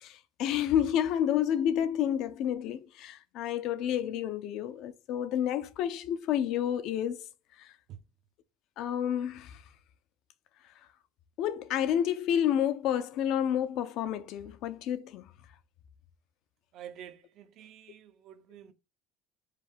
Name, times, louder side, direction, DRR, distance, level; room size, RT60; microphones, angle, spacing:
voice 1, 0.0-7.3 7.6-7.7 8.8-9.6 11.4-15.3, left 10 dB, 60° left, 0.6 m, -30 dB
voice 2, 16.7-18.7, right 10 dB, 55° right, 0.7 m, -48 dB
4.9 x 2.7 x 3.4 m
cardioid pair, 130°, 0 cm